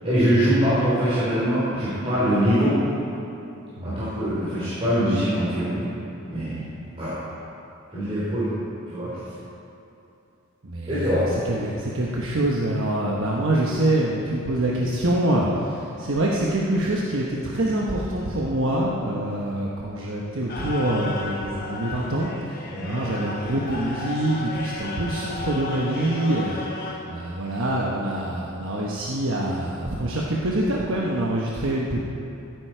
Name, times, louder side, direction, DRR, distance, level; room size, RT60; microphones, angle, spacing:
voice 1, 0.0-2.8 3.8-5.9 6.3-6.6 7.0-7.1 7.9-8.5 8.9-9.1 10.9-11.3 22.7-23.1, equal, 25° right, -11 dB, 3.3 m, -23 dB
voice 2, 3.8-4.2 6.9-7.0 10.6-22.3 22.8-32.0, right 1 dB, 65° right, -3 dB, 1.1 m, -25 dB
sound 1, 20.5-26.9, left 3 dB, 45° left, 1.6 m, -34 dB
15.0 x 9.2 x 4.5 m, 2.8 s
head